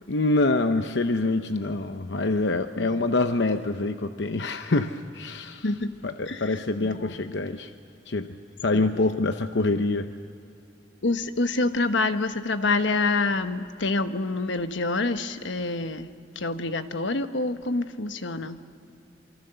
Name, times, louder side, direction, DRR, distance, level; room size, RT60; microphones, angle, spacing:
voice 1, 0.1-5.7 6.0-7.7 8.1-10.1, left 2 dB, 75° left, 8 dB, 0.8 m, -25 dB
voice 2, 6.3-7.1 8.7-8.9 11.0-18.6, left 3 dB, 90° left, 9 dB, 1.2 m, -27 dB
27.0 x 24.5 x 6.9 m, 2.5 s
head